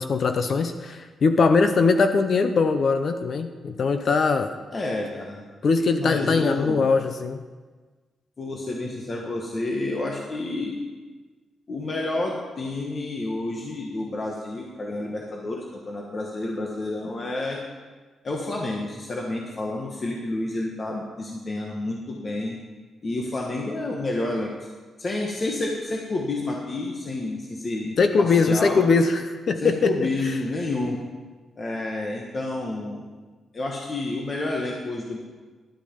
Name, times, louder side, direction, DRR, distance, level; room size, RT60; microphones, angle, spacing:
voice 1, 0.0-4.5 5.6-7.4 28.0-29.9, left 4 dB, 45° left, 8 dB, 0.6 m, -21 dB
voice 2, 4.7-5.5 6.0-6.9 8.4-10.8 11.7-17.6 18.2-22.6 23.0-24.5 25.0-28.8 29.6-31.0 31.6-33.0 33.5-35.2, left 2 dB, 30° left, -1 dB, 1.2 m, -29 dB
11.5 x 8.4 x 5.1 m, 1.4 s
wide cardioid pair, 145°, 0 cm